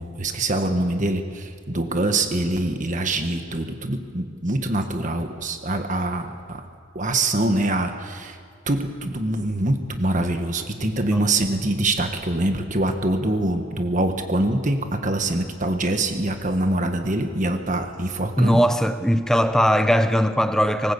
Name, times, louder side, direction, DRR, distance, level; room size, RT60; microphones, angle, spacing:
voice 1, 0.0-6.6 6.9-8.4 8.7-18.6, right 2 dB, 35° right, 1.5 m, -24 dB
voice 2, 18.4-20.9, equal, ahead, 0.8 m, -19 dB
23.5 x 19.0 x 8.4 m
head